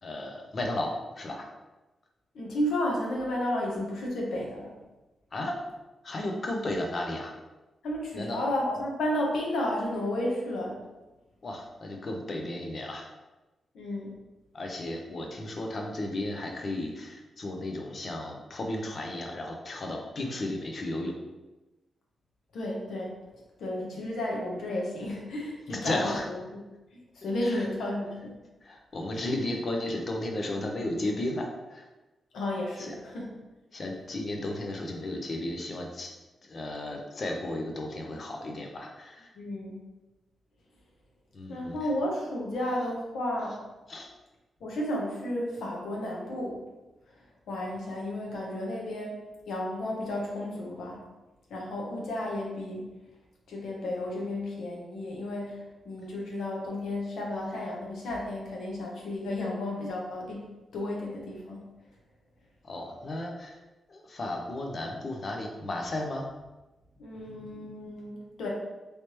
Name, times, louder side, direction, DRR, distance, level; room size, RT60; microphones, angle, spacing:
voice 1, 0.0-1.5 5.3-5.6 6.0-7.4 8.1-8.5 11.4-13.1 14.5-21.1 25.7-26.3 27.4-27.7 28.6-31.9 32.8-33.0 33.7-36.1 36.4-39.3 41.3-41.7 43.9-44.1 62.6-63.6 63.9-66.3, left 1 dB, 40° left, 2 dB, 0.5 m, -34 dB
voice 2, 2.3-4.8 7.8-10.8 13.7-14.1 22.5-23.2 23.6-26.4 26.9-28.4 32.3-33.3 39.3-39.8 41.5-43.6 44.6-46.6 47.1-47.2 47.5-49.2 49.5-51.0 51.5-52.9 53.5-60.5 60.7-61.7 67.0-68.5, left 1 dB, 85° left, -2 dB, 0.9 m, -32 dB
3.2 x 3.0 x 2.9 m, 1.1 s
wide cardioid pair, 145°, 0 cm